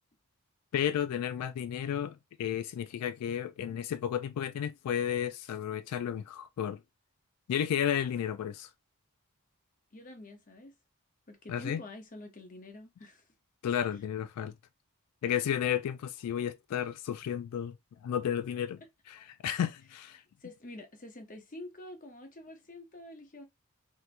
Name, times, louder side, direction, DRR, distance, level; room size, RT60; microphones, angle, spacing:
voice 1, 0.7-6.8 7.5-8.7 11.5-11.8 13.6-14.5 15.2-17.8 18.0-18.8 19.1-20.2, left 9 dB, 90° left, 0.3 m, -32 dB
voice 2, 9.9-10.7 11.3-13.3 20.4-23.4, left 1 dB, 35° left, 0.7 m, -47 dB
3.3 x 2.8 x 2.5 m
head